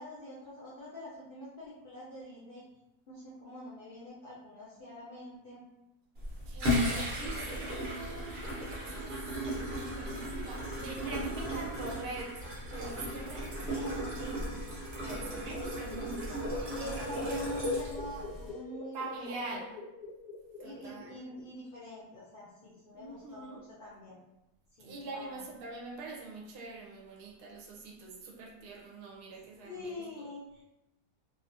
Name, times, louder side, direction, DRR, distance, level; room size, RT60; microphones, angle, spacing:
voice 1, 0.0-2.7 3.1-5.7 13.7-14.4 15.0-15.2 16.7-19.6 20.6-24.2 24.8-25.4 29.6-30.6, left 1 dB, 55° left, -8 dB, 0.6 m, -45 dB
sound 1, 6.1-18.5, equal, 50° right, 0.9 m, -35 dB
voice 2, 6.5-12.5 12.7-13.5 15.0-17.4 18.9-19.6 20.6-21.1 22.9-23.6 24.8-29.9, right 3 dB, 80° right, -1 dB, 1.1 m, -44 dB
sound 2, 11.8-18.7, left 2 dB, 70° left, 1.0 m, -52 dB
sound 3, 14.7-21.4, left 3 dB, 90° left, 1.2 m, -47 dB
2.8 x 2.4 x 2.5 m, 0.91 s
omnidirectional pair, 1.7 m